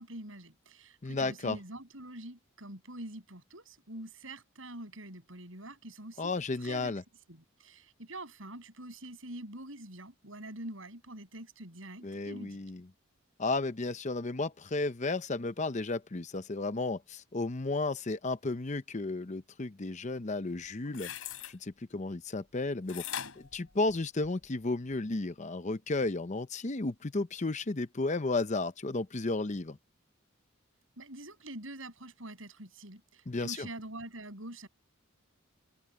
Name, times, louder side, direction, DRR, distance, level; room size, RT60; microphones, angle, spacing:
voice 1, 0.0-6.3 6.6-7.0 7.3-12.6 31.0-34.7, right 1 dB, 70° right, 7.7 m, -45 dB
voice 2, 1.0-1.6 6.2-7.0 12.0-12.8 13.4-21.1 21.5-23.0 23.4-29.8 33.3-33.7, left 3 dB, 35° left, 0.7 m, -33 dB
sound 1, 20.8-21.5 22.9-24.4 24.9-25.0, left 9 dB, 80° left, 4.2 m, -41 dB
open air
head